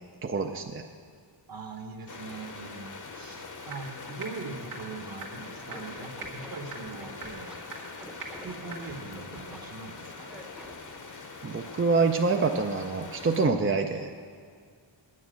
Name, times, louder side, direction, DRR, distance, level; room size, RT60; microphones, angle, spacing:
voice 1, 0.2-0.8 11.4-14.1, right 4 dB, 30° right, 4 dB, 0.4 m, -26 dB
voice 2, 1.5-7.7 8.4-10.3, right 4 dB, 45° right, 5 dB, 1.0 m, -41 dB
sound 1, 2.1-13.5, left 4 dB, 40° left, 0.8 m, -43 dB
sound 2, 3.7-3.8 4.2-4.3 4.7-4.8 5.2-5.3 5.7-5.8 6.2-6.3 6.7-6.8 7.2-7.3 7.7-7.8 8.2-8.3 8.7-8.8, right 6 dB, 90° right, 1.9 m, -38 dB
Scratching (performance technique), 5.7-7.6 8.0-9.6 10.3-10.9, equal, ahead, 0.7 m, -47 dB
9.7 x 9.1 x 6.3 m, 2.1 s
wide cardioid pair, 155°, 50 cm